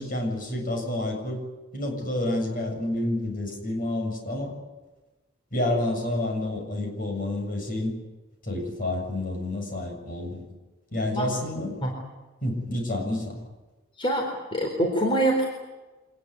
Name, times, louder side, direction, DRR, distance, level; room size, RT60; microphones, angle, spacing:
voice 1, 0.0-1.4 1.7-4.5 5.5-8.0 8.4-10.4 10.9-11.8 12.4-13.4, left 1 dB, 40° left, 3 dB, 7.5 m, -29 dB
voice 2, 14.0-15.5, right 1 dB, 25° left, 1 dB, 4.1 m, -24 dB
26.0 x 20.0 x 9.7 m, 1.2 s
head